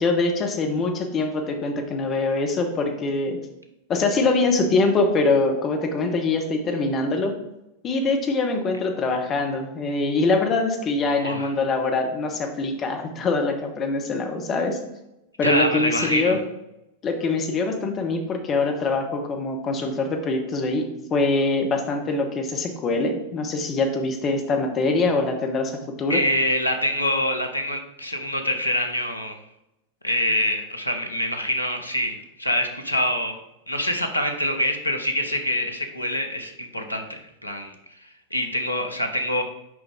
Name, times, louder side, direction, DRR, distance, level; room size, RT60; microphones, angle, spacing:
voice 1, 0.0-3.4 3.9-7.3 7.8-14.8 15.4-16.4 17.0-26.2, left 3 dB, 30° left, 4 dB, 1.0 m, -23 dB
voice 2, 11.2-11.5 15.4-16.4 26.1-29.4 30.0-33.3 33.7-37.7 38.0-39.4, left 1 dB, 85° left, 5 dB, 0.8 m, -25 dB
6.2 x 5.1 x 3.6 m, 0.89 s
figure-of-eight pair, 90°, 0 cm